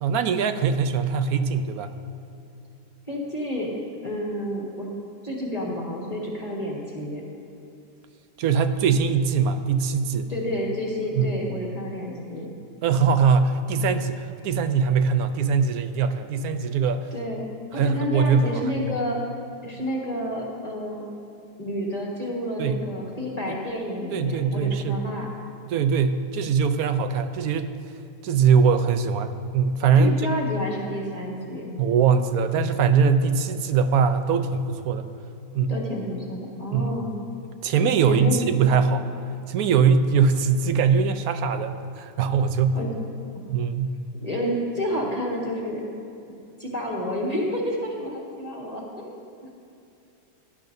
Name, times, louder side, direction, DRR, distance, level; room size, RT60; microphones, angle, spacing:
voice 1, 0.0-1.9 8.4-10.3 11.2-11.3 12.8-17.1 17.7-18.6 22.6-22.8 24.1-25.0 25.7-27.7 28.2-30.2 31.8-35.1 35.5-35.8 36.7-36.9 37.6-39.2 39.5-42.8 43.5-44.0, right 6 dB, 70° right, 9 dB, 1.0 m, -22 dB
voice 2, 3.1-3.7 4.0-4.9 5.2-7.2 10.3-12.5 17.1-17.5 17.7-19.2 19.6-21.0 21.6-25.3 29.9-31.7 35.7-37.1 38.1-38.7 42.7-42.9 44.2-45.8 46.6-49.2, equal, 25° left, -4 dB, 1.6 m, -30 dB
17.5 x 11.0 x 2.6 m, 2.7 s
omnidirectional pair, 1.8 m